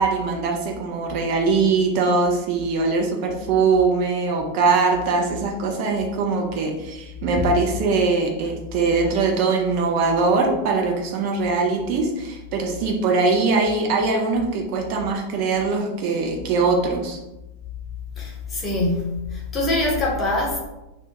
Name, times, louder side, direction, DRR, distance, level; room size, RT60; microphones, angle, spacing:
voice 1, 0.0-17.2, right 4 dB, 45° right, 1 dB, 0.4 m, -22 dB
voice 2, 18.2-20.6, left 2 dB, 20° left, -3 dB, 0.7 m, -24 dB
2.3 x 2.0 x 3.1 m, 0.98 s
figure-of-eight pair, 90°, 0 cm